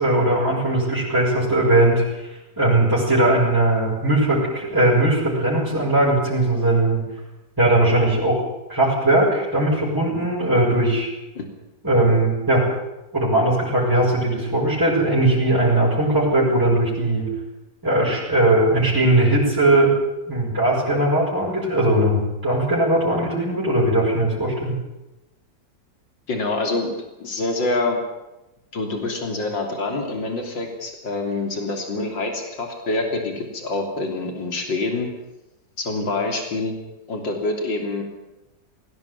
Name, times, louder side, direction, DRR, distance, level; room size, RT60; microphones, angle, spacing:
voice 1, 0.0-7.0 7.6-8.4 8.7-11.1 11.8-12.7 13.1-17.3 17.8-19.9 20.3-24.7, right 1 dB, 10° right, -7 dB, 6.3 m, -19 dB
voice 2, 26.3-28.0 28.7-35.1 35.8-36.7 37.1-38.0, left 2 dB, 85° left, 3 dB, 3.9 m, -26 dB
20.0 x 17.5 x 9.6 m, 0.96 s
omnidirectional pair, 2.0 m